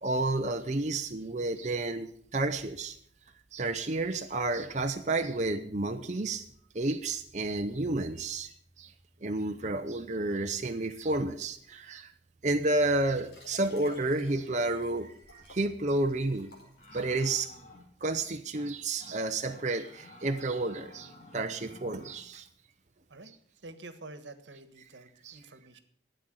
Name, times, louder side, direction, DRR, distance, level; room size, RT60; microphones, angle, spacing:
voice 1, 0.0-3.0 3.5-6.4 6.7-8.5 8.8-8.9 9.2-12.1 12.4-16.5 16.9-17.5 18.0-22.5 25.2-25.4, right 2 dB, 40° right, 5 dB, 0.7 m, -31 dB
Liquid, 13.0-17.6 18.2-18.3, left 1 dB, 65° left, 5.2 m, -54 dB
sound 1, 16.8-18.2 18.5-18.7 19.0-19.2 19.5-22.2, left 1 dB, 40° left, 2.6 m, -52 dB
voice 2, 23.6-25.8, right 2 dB, 85° right, 11 dB, 1.4 m, -48 dB
12.5 x 9.0 x 7.8 m, 0.64 s
head